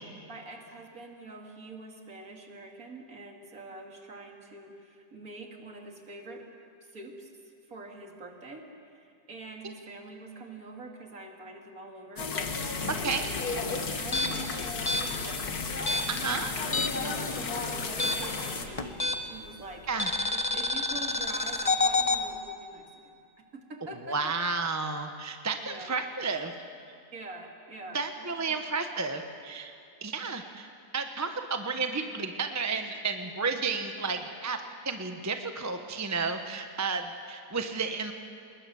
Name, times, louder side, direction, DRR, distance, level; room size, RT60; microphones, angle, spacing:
voice 1, 0.3-6.4 6.8-7.3 7.7-13.4 14.0-15.5 16.3-19.9 20.3-24.3 25.7-25.9 27.1-28.6 34.0-34.1, right 2 dB, 55° right, 1 dB, 3.0 m, -45 dB
sound 1, 12.2-18.7, left 4 dB, 60° left, 2.1 m, -33 dB
sound 2, 14.0-17.1 17.4-19.5 20.0-22.2, left 2 dB, 25° left, 0.8 m, -29 dB
voice 2, 16.1-16.5 19.9-20.1 24.1-26.5 27.9-29.7 30.0-30.7 30.9-38.1, right 4 dB, 15° right, 6 dB, 0.8 m, -32 dB
27.0 x 20.5 x 7.1 m, 2.4 s
omnidirectional pair, 1.8 m